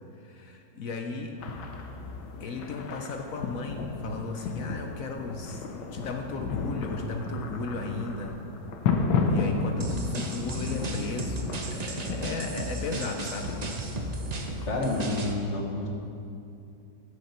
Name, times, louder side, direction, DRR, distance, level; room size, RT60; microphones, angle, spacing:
voice 1, 0.2-1.4 2.4-5.6 5.9-8.4 8.9-13.6, left 3 dB, 60° left, 3 dB, 1.0 m, -35 dB
sound 1, 1.4-15.3, left 4 dB, 80° left, 1.5 m, -33 dB
sound 2, 9.8-15.3, right 2 dB, 65° right, 0.4 m, -35 dB
voice 2, 14.7-15.9, left 2 dB, 45° left, 0 dB, 1.5 m, -29 dB
13.5 x 6.7 x 4.3 m, 2.6 s
omnidirectional pair, 1.9 m